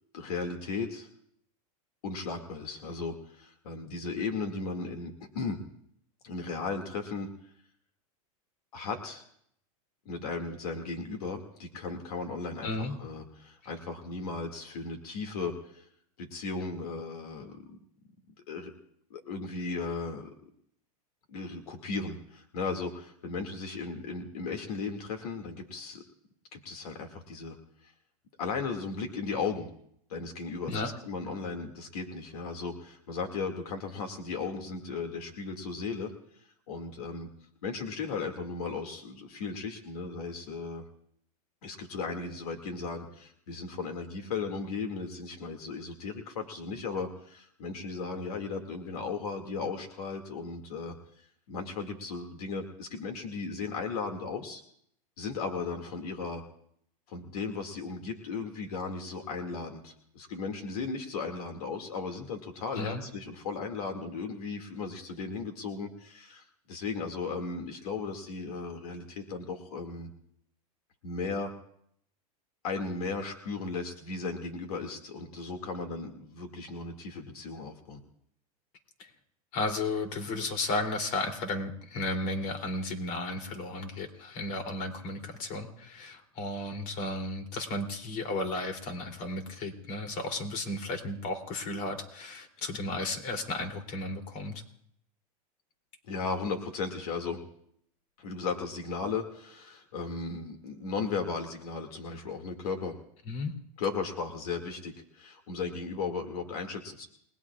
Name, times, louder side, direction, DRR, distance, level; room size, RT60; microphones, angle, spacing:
voice 1, 0.1-1.1 2.0-5.6 6.2-7.3 8.7-9.2 10.1-15.8 16.2-17.8 18.5-18.7 19.1-20.3 21.3-26.0 26.5-27.6 27.8-27.9 28.4-29.7 30.1-36.1 36.7-37.3 37.6-40.8 41.6-54.6 55.2-56.4 57.1-70.1 71.0-71.5 72.6-78.0 96.1-97.4 98.2-102.9 103.8-107.1, left 4 dB, 85° left, 4 dB, 2.3 m, -36 dB
voice 2, 12.6-12.9 30.7-30.9 62.7-63.0 79.0-79.1 79.5-94.6 103.3-103.5, left 2 dB, 45° left, 3 dB, 3.1 m, -34 dB
29.5 x 20.0 x 2.4 m, 0.71 s
supercardioid pair, 145°, 19 cm